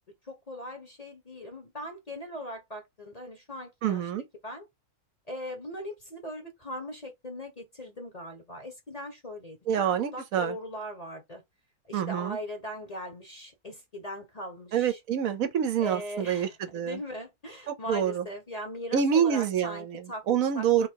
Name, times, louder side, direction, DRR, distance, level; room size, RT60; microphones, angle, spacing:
voice 1, 0.2-4.0 4.4-4.6 5.3-9.8 10.1-11.4 11.8-15.0 15.8-20.2 20.5-20.9, equal, 30° left, 1.0 m, -40 dB
voice 2, 3.8-4.2 9.7-10.6 11.9-12.4 14.7-17.0 17.7-18.2 18.9-20.9, right 8 dB, 70° right, 1.0 m, -27 dB
3.5 x 2.8 x 4.4 m
omnidirectional pair, 1.6 m